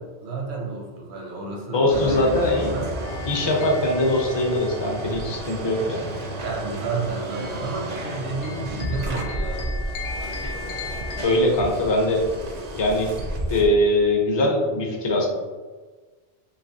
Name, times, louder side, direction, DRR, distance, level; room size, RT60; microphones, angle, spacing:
voice 1, 0.0-3.0 5.6-5.8 6.4-9.8, right 3 dB, 80° right, 0 dB, 1.0 m, -31 dB
voice 2, 1.7-2.7 3.3-6.0 10.4-10.5 11.2-12.3 12.8-13.1 13.5-15.3, left 1 dB, 35° left, -1 dB, 0.5 m, -21 dB
sound 1, 1.9-13.7, right 1 dB, 50° right, 0.5 m, -32 dB
sound 2, 3.0-11.2, left 4 dB, 80° left, 0.9 m, -39 dB
3.2 x 2.8 x 2.7 m, 1.3 s
omnidirectional pair, 1.1 m